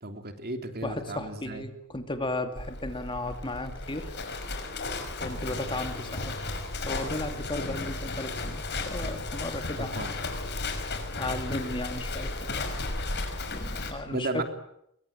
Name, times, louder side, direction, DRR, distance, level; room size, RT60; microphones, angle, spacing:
voice 1, 0.0-1.6 9.8-10.1 14.1-14.4, right 2 dB, 45° right, 6 dB, 3.2 m, -34 dB
voice 2, 0.8-4.1 5.2-6.3 6.9-10.2 11.2-12.6 13.5-14.4, left 2 dB, 25° left, 7 dB, 2.6 m, -35 dB
Livestock farm animals working animals, 2.6-13.9, left 3 dB, 50° left, 5.5 m, -34 dB
sound 1, 5.2-11.8, right 1 dB, 85° left, 5.7 m, -44 dB
26.0 x 23.5 x 8.8 m, 0.78 s
head